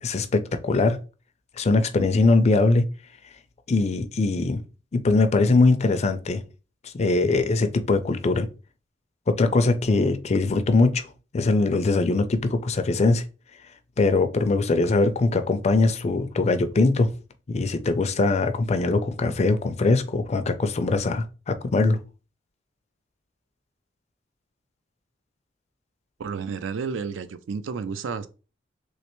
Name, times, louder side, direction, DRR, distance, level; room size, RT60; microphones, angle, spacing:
voice 1, 0.0-1.0 1.6-2.8 3.7-4.6 4.9-6.4 6.8-8.5 9.3-11.1 11.3-13.2 14.0-17.1 17.5-22.0, left 3 dB, 35° left, 0.4 m, -21 dB
voice 2, 26.2-28.3, right 5 dB, 75° right, 0.4 m, -31 dB
3.2 x 3.1 x 3.0 m
head